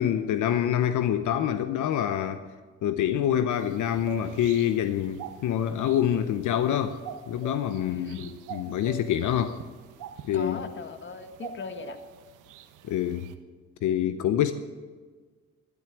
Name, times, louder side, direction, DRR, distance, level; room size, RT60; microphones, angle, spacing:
voice 1, 0.0-2.4 2.8-7.0 7.3-8.2 8.5-9.6 10.2-10.6 12.9-13.3 13.8-14.5, left 10 dB, 75° left, 10 dB, 0.8 m, -26 dB
sound 1, 3.5-13.3, right 8 dB, 90° right, 1.1 m, -44 dB
voice 2, 7.8-8.4 10.3-12.0, left 5 dB, 40° left, 8 dB, 1.6 m, -39 dB
12.5 x 12.0 x 8.4 m, 1.5 s
cardioid pair, 90°, 30 cm